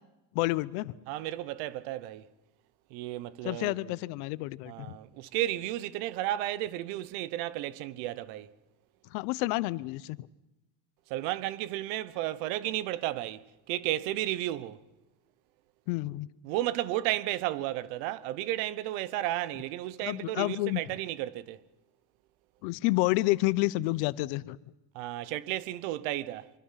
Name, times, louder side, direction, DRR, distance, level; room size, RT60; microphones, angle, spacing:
voice 1, 0.3-0.9 3.4-4.9 9.1-10.3 15.9-16.3 20.0-20.8 22.6-24.6, left 20 dB, 85° left, 0.9 m, -29 dB
voice 2, 1.1-2.3 2.9-3.9 4.7-8.5 11.1-14.8 16.4-21.6 24.9-26.5, right 14 dB, 80° right, 1.2 m, -33 dB
25.5 x 24.5 x 5.8 m
cardioid pair, 175°, 46 cm